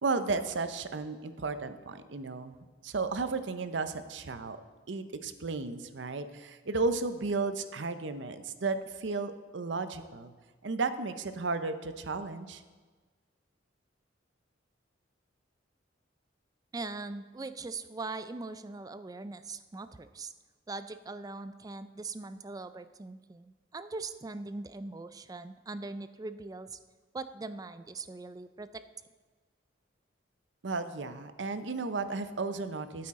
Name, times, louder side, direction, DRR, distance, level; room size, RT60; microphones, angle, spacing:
voice 1, 0.0-4.6 4.9-10.3 10.6-12.6 30.6-33.1, right 3 dB, 70° right, 11 dB, 0.7 m, -34 dB
voice 2, 16.7-20.3 20.7-26.8 27.1-28.8, right 3 dB, 20° right, 12 dB, 0.3 m, -41 dB
12.5 x 8.6 x 3.7 m, 1.4 s
head